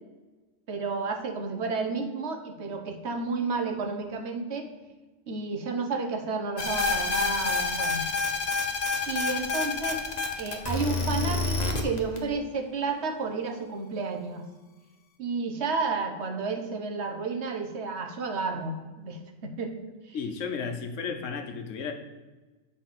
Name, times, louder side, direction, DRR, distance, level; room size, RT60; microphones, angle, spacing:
voice 1, 0.7-4.7 5.3-8.1 9.1-10.0 10.4-14.4 15.2-19.7 20.1-20.2, right 4 dB, 65° right, 5 dB, 1.2 m, -31 dB
sound 1, 6.6-12.2, left 3 dB, 35° left, 0.9 m, -27 dB
voice 2, 20.1-21.9, left 5 dB, 80° left, 6 dB, 1.2 m, -33 dB
7.6 x 4.0 x 5.7 m, 1.2 s
omnidirectional pair, 1.3 m